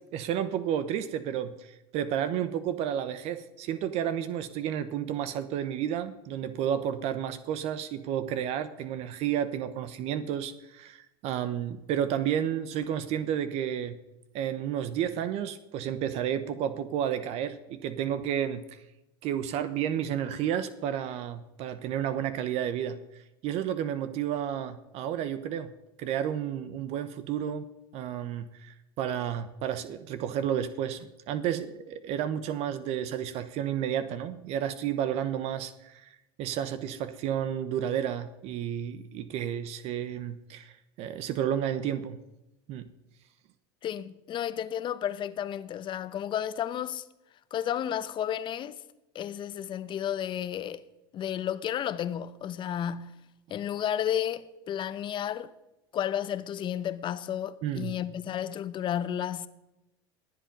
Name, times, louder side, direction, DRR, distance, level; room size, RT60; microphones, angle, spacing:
voice 1, 0.0-14.0 14.3-18.8 19.2-25.7 26.0-27.6 27.9-42.2 42.7-42.9 57.6-57.9, right 9 dB, 55° right, 1.0 m, -31 dB
voice 2, 43.8-47.0 47.5-48.8 49.1-50.8 51.1-53.1 53.5-55.5 55.9-59.5, left 10 dB, 40° left, 0.9 m, -32 dB
21.0 x 7.8 x 5.4 m
supercardioid pair, 100°, 13 cm